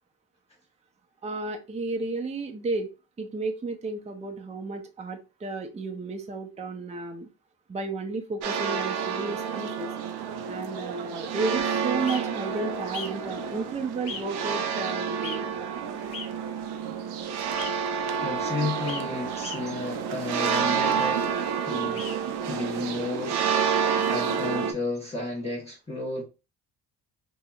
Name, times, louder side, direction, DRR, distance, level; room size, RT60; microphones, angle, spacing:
voice 1, 1.2-2.9 3.2-7.3 7.7-9.9 10.4-15.4, right 3 dB, 15° right, 0.5 m, -33 dB
sound 1, 8.4-24.7, right 7 dB, 70° right, 0.5 m, -29 dB
sound 2, 12.1-12.2 12.9-13.1 14.0-14.2 15.2-15.4 16.1-16.3 17.6-17.7 18.9-19.0 19.4-19.6 21.9-22.2, left 5 dB, 55° left, 0.9 m, -36 dB
voice 2, 18.2-21.3 21.6-22.1 22.5-23.7 24.1-26.2, left 2 dB, 15° left, 1.0 m, -33 dB
3.5 x 2.1 x 2.3 m
supercardioid pair, 55°, 42 cm